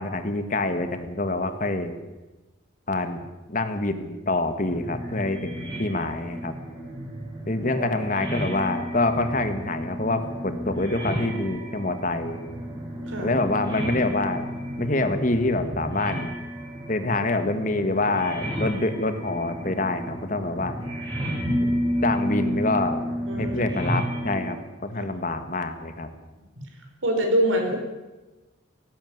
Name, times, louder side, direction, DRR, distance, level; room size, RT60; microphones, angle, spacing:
voice 1, 0.0-1.9 2.9-3.2 3.5-6.5 7.5-12.4 13.2-14.5 14.8-16.3 16.9-20.8 21.6-21.7 22.0-23.0 23.4-26.1, left 2 dB, 40° left, 9 dB, 1.6 m, -26 dB
sound 1, 4.6-24.5, equal, 20° right, 7.5 m, -31 dB
voice 2, 23.3-23.6 27.0-27.8, right 1 dB, 75° right, 3 dB, 4.9 m, -24 dB
17.5 x 15.5 x 9.5 m, 1.1 s
head